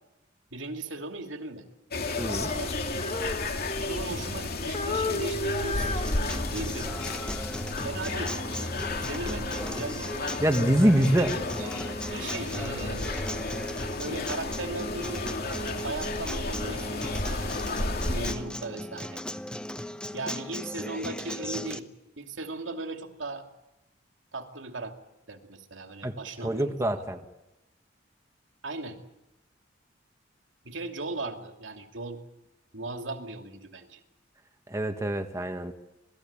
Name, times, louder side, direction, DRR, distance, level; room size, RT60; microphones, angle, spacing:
voice 1, 0.5-1.7 2.3-2.7 3.8-7.0 7.8-10.3 11.2-11.7 12.0-13.1 14.0-15.3 15.8-17.5 18.1-19.2 20.1-21.9 22.2-23.5 24.3-25.0 25.3-27.0 28.6-29.0 30.6-32.2 32.7-34.0, right 2 dB, 85° right, 5 dB, 2.8 m, -38 dB
sound 1, 1.9-18.3, left 2 dB, 55° left, 2.7 m, -33 dB
Female singing, 2.2-4.5 4.7-6.8 7.3-7.6, left 2 dB, 35° left, 1.7 m, -34 dB
voice 2, 2.2-2.5 10.4-11.3 26.0-26.1 26.4-27.2 34.7-35.7, right 1 dB, 15° right, 5 dB, 1.6 m, -25 dB
Acoustic guitar, 5.8-21.8, left 1 dB, 5° left, 0.9 m, -38 dB
27.5 x 19.5 x 8.8 m, 0.94 s
head